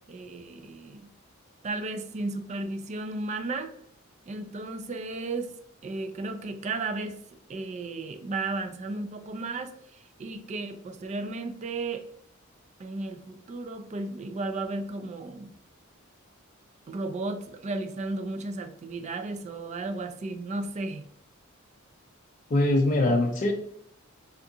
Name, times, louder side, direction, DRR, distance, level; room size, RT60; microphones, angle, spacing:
voice 1, 0.1-1.1 1.6-3.7 4.3-5.5 5.8-7.2 7.5-12.0 12.8-15.5 16.9-21.1, right 3 dB, 35° right, 8 dB, 0.3 m, -34 dB
voice 2, 22.5-23.5, left 2 dB, 40° left, -1 dB, 0.4 m, -22 dB
3.5 x 2.4 x 2.7 m, 0.67 s
head